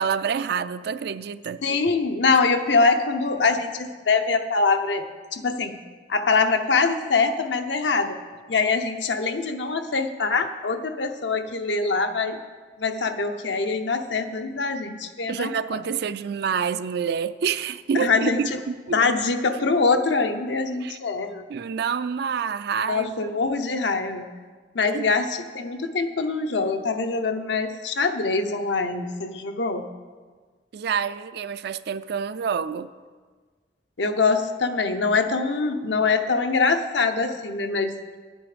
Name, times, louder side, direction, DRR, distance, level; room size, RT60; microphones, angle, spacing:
voice 1, 0.0-1.6 15.3-19.0 20.8-21.0 21.5-23.3 24.9-25.1 30.7-32.9, right 6 dB, 65° right, 0.4 m, -27 dB
voice 2, 1.6-5.8 6.1-8.2 8.5-12.4 12.8-15.8 17.9-18.6 18.9-21.4 22.9-24.3 24.7-29.9 34.0-38.0, left 4 dB, 85° left, 0.8 m, -24 dB
10.0 x 9.0 x 5.0 m
head